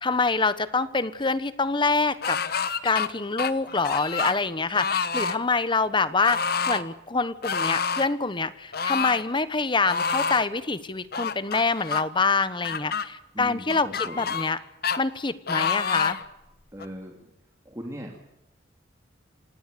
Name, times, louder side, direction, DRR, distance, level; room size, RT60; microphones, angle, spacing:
voice 1, 0.0-2.4 2.8-6.4 6.7-14.6 15.0-16.2, left 4 dB, 25° left, 14 dB, 1.1 m, -25 dB
sound 1, 2.2-3.1 3.4-4.4 4.7-5.4 6.2-6.8 7.4-8.1 8.7-9.2 9.8-10.5 11.1-12.0 12.6-13.1 13.7-14.6 14.8-15.0 15.5-16.3 16.8-16.9, left 5 dB, 55° left, 1.2 m, -28 dB
voice 2, 13.3-14.3 16.7-17.1 17.6-18.3, equal, 15° right, 1 dB, 2.7 m, -39 dB
27.5 x 18.0 x 6.9 m, 0.90 s
head